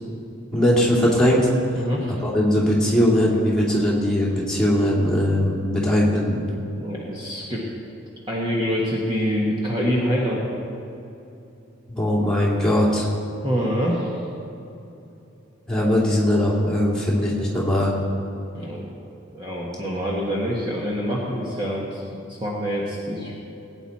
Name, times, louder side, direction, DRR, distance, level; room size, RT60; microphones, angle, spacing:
voice 1, 0.5-1.5 2.2-6.4 11.9-13.1 15.7-17.9, left 1 dB, 5° left, -6 dB, 2.6 m, -20 dB
voice 2, 1.7-2.1 6.8-7.6 8.3-10.6 13.4-14.2 18.5-18.9 19.3-22.0 22.3-23.3, equal, 25° right, -5 dB, 1.5 m, -25 dB
19.5 x 9.2 x 4.3 m, 2.8 s
head